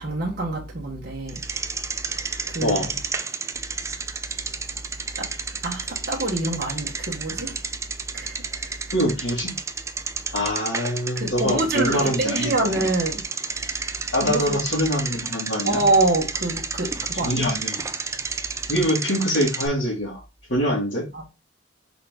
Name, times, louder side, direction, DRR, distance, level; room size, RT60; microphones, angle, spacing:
voice 1, 0.0-1.4 2.5-3.0 5.2-5.3 5.6-7.6 8.1-8.9 11.1-13.2 14.2-14.6 15.6-17.5 21.1-21.3, right 2 dB, 50° right, 1.1 m, -26 dB
Bicycle, 1.3-19.7, right 4 dB, 15° right, 0.3 m, -31 dB
voice 2, 8.9-9.5 10.3-12.7 14.1-15.8 17.2-17.8 18.7-20.2 20.5-21.1, equal, 65° left, 2.0 m, -24 dB
4.0 x 3.7 x 3.4 m
head